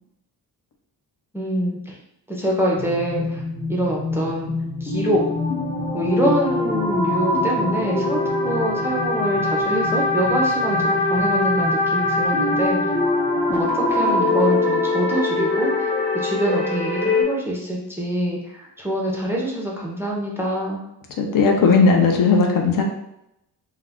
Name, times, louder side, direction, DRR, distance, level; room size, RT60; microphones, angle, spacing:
voice 1, 1.3-1.9 2.3-3.4 3.7-4.5 4.8-5.2 5.9-12.8 13.5-15.9 16.1-20.8, right 1 dB, 5° right, -4 dB, 0.5 m, -25 dB
sound 1, 2.8-17.2, left 2 dB, 30° left, 1.0 m, -22 dB
voice 2, 21.2-22.8, left 4 dB, 55° left, 2 dB, 0.6 m, -16 dB
2.3 x 2.2 x 3.4 m, 0.81 s
cardioid pair, 115°, 39 cm